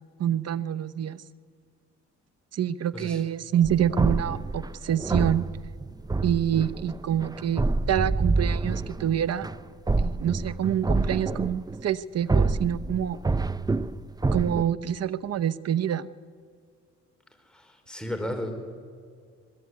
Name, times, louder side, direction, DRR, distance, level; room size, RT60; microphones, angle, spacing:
voice 1, 0.2-1.2 2.5-5.5 6.2-9.5 10.0-13.2 14.3-16.1, right 10 dB, 55° right, 15 dB, 1.0 m, -26 dB
sound 1, 3.6-11.9 12.3-14.6, right 3 dB, 15° right, 0.7 m, -27 dB
voice 2, 17.5-18.6, equal, 5° left, 4 dB, 5.0 m, -34 dB
24.5 x 20.5 x 9.6 m, 2.1 s
cardioid pair, 90°, 30 cm